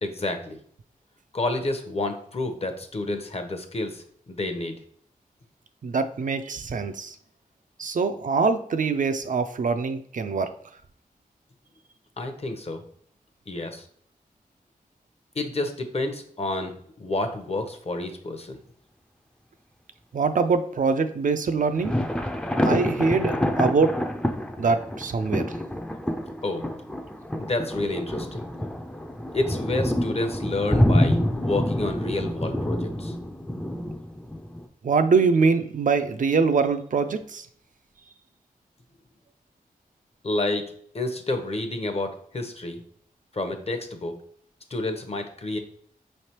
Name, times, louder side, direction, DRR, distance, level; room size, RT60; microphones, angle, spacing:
voice 1, 0.0-0.6 1.3-4.8 12.2-12.8 13.5-13.9 15.4-18.6 26.4-26.6 27.4-28.4 29.3-33.2 40.2-40.6 40.9-42.8 43.3-44.1 44.7-45.6, left 2 dB, 45° left, 6 dB, 0.7 m, -29 dB
voice 2, 5.8-7.1 7.8-10.5 20.1-22.0 22.6-23.9 24.6-25.4 34.8-37.5, right 4 dB, 60° right, 8 dB, 0.4 m, -23 dB
sound 1, 21.8-34.7, left 1 dB, 5° left, 0.4 m, -27 dB
5.1 x 3.2 x 2.9 m, 0.62 s
wide cardioid pair, 75°, 15 cm